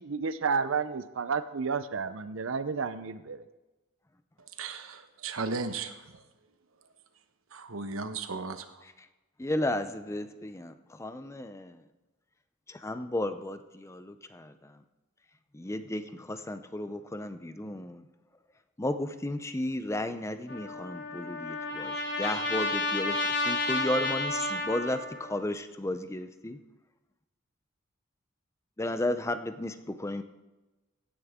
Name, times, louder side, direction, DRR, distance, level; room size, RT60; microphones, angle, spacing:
voice 1, 0.0-3.4, right 5 dB, 70° right, 13 dB, 0.6 m, -31 dB
voice 2, 4.6-5.9 7.5-8.7, right 4 dB, 90° right, 9 dB, 1.0 m, -35 dB
voice 3, 9.4-11.8 12.7-14.8 15.5-18.1 18.8-26.6 28.8-30.2, left 1 dB, 15° left, 10 dB, 0.5 m, -34 dB
Trumpet, 20.5-25.3, left 2 dB, 60° left, 2.9 m, -31 dB
16.0 x 10.0 x 3.6 m, 1.1 s
head